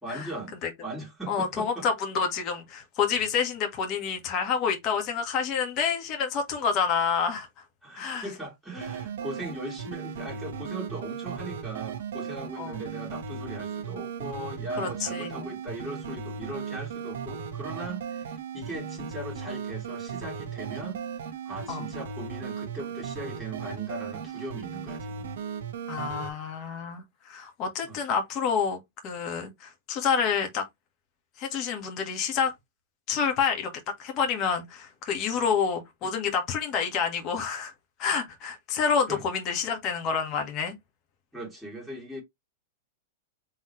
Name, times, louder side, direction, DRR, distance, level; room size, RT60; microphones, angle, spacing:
voice 1, 0.0-1.9 7.8-21.0 21.4-25.3 27.8-28.0 39.1-39.2 41.3-42.2, right 1 dB, ahead, 2.7 m, -39 dB
voice 2, 1.3-7.5 8.0-8.3 12.6-12.8 14.8-15.5 21.7-21.9 25.9-30.7 31.4-32.5 33.1-33.7 34.0-37.7 38.0-40.7, left 6 dB, 35° left, 1.8 m, -28 dB
sound 1, 8.8-26.3, right 6 dB, 75° right, 1.3 m, -36 dB
4.1 x 3.8 x 3.2 m
supercardioid pair, 145°, 0 cm